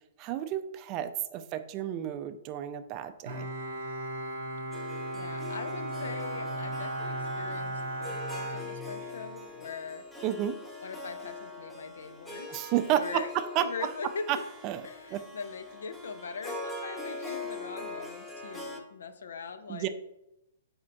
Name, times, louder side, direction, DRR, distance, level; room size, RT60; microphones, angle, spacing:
voice 1, 0.2-3.5 10.2-10.6 12.5-13.9 14.3-14.4 14.6-14.8 15.1-15.2 19.7-19.9, right 11 dB, 35° right, 11 dB, 0.3 m, -31 dB
Bowed string instrument, 3.2-9.4, right 1 dB, 75° right, 0.7 m, -36 dB
Harp, 4.7-18.8, left 2 dB, 5° left, 0.6 m, -43 dB
voice 2, 5.1-10.0 10.8-12.6 12.9-13.3 13.6-14.3 14.8-19.9, left 5 dB, 85° left, 10 dB, 0.4 m, -41 dB
4.3 x 4.2 x 2.6 m, 0.86 s
hypercardioid pair, 140°, 0 cm